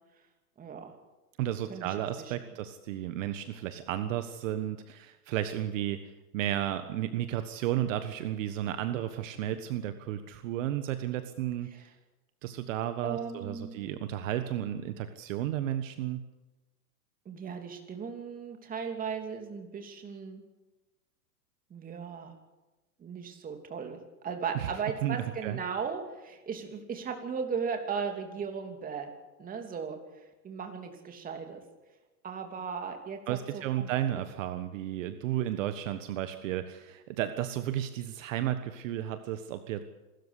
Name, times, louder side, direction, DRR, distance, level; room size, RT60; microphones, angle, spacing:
voice 1, 0.6-0.9 1.7-2.3 11.7-11.8 13.0-13.8 17.2-20.4 21.7-22.3 23.0-29.1 29.4-30.0 30.4-31.6 32.2-33.9 34.1-34.2, right 6 dB, 20° right, 4 dB, 2.9 m, -37 dB
voice 2, 1.4-11.7 12.4-16.2 24.5-24.7 25.0-25.6 33.3-39.8, right 12 dB, 55° right, 9 dB, 1.5 m, -33 dB
26.0 x 13.5 x 8.4 m, 1.1 s
hypercardioid pair, 140°, 47 cm